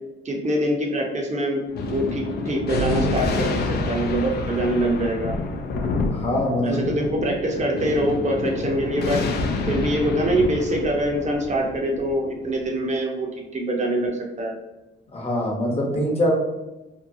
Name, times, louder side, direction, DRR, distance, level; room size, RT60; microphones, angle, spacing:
voice 1, 0.2-5.4 6.6-9.2 9.7-14.1 14.4-14.5, right 1 dB, 35° right, 0 dB, 0.7 m, -24 dB
Thunder, 1.7-12.6, left 3 dB, 55° left, 0.4 m, -28 dB
voice 2, 6.1-7.0 15.1-16.4, equal, 30° left, -1 dB, 0.8 m, -23 dB
2.8 x 2.2 x 2.6 m, 1.0 s
cardioid pair, 90°, 20 cm